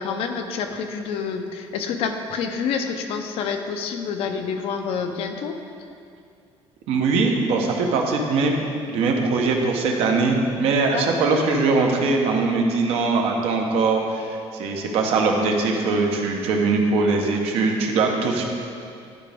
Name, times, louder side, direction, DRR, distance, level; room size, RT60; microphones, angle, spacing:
voice 1, 0.0-5.6 10.9-11.2, left 6 dB, 65° left, 6 dB, 0.6 m, -28 dB
voice 2, 6.9-8.6 8.9-18.4, right 3 dB, 65° right, 1 dB, 1.0 m, -21 dB
11.5 x 5.0 x 3.5 m, 2.4 s
cardioid pair, 165°, 11 cm